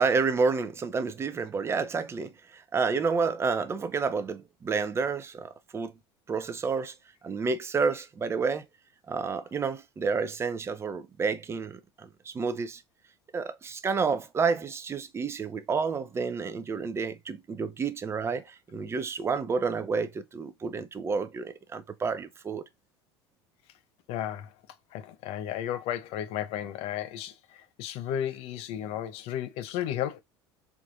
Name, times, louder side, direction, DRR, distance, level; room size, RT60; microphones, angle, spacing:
voice 1, 0.0-5.9 6.3-6.9 7.2-8.6 9.1-12.8 13.3-22.6, right 5 dB, 20° right, 0.4 m, -30 dB
voice 2, 24.1-24.5 24.9-30.2, left 11 dB, 45° left, 0.5 m, -33 dB
3.5 x 2.5 x 2.4 m
figure-of-eight pair, 70°, 14 cm